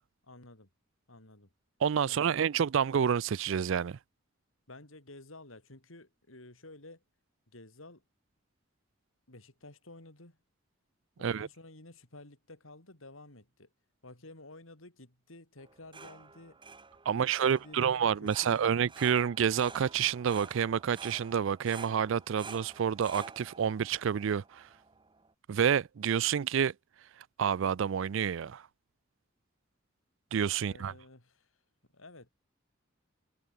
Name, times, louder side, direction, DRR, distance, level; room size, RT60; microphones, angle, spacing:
voice 1, 0.2-0.7 1.1-1.5 2.1-2.4 4.7-7.0 7.5-8.0 9.3-10.4 11.2-13.7 14.0-16.6 17.1-18.8 30.6-31.5 31.9-32.3, left 2 dB, 85° left, 4.8 m, -52 dB
voice 2, 1.8-4.0 11.2-11.5 17.1-24.7 25.5-26.7 27.4-28.6 30.3-30.9, right 7 dB, 70° right, 0.4 m, -29 dB
sound 1, 15.6-25.3, right 4 dB, 25° right, 1.6 m, -50 dB
head